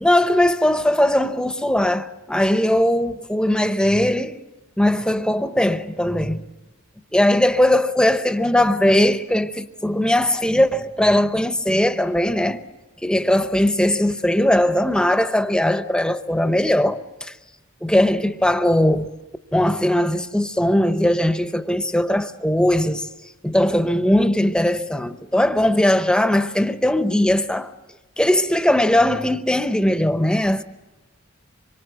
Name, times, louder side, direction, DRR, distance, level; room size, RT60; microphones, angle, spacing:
voice 1, 0.0-4.4 4.8-6.4 7.1-12.6 13.0-17.3 17.8-19.1 19.5-23.1 23.4-27.7 28.2-30.6, left 1 dB, 5° left, 0.8 m, -19 dB
26.0 x 23.5 x 7.9 m
head